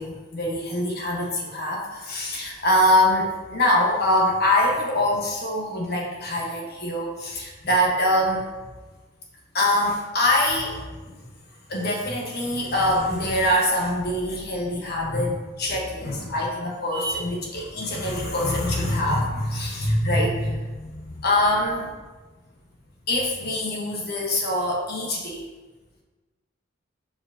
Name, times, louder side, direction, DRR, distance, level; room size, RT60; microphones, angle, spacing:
voice 1, 0.0-8.4 9.5-11.2 11.7-21.9 23.1-25.4, left 1 dB, 50° left, -2 dB, 1.3 m, -24 dB
7.1 x 4.8 x 2.8 m, 1.2 s
head